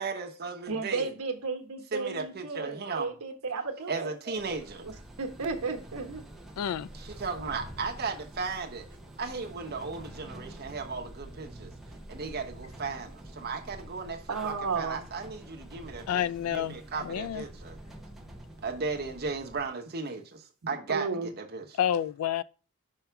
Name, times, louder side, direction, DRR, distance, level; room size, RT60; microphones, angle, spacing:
voice 1, 0.0-1.1 1.9-3.1 3.9-4.9 6.9-8.9 9.2-11.7 12.1-16.1 16.5-17.8 18.6-21.7, right 4 dB, 45° right, 1.0 m, -36 dB
voice 2, 0.7-4.4 4.8-6.2 14.3-15.1 20.9-21.3, right 4 dB, 85° right, 1.1 m, -34 dB
sound 1, 4.4-19.7, right 1 dB, ahead, 0.7 m, -47 dB
voice 3, 6.6-6.9 16.1-17.4 21.8-22.4, left 10 dB, 80° left, 0.3 m, -29 dB
5.6 x 3.4 x 5.7 m
head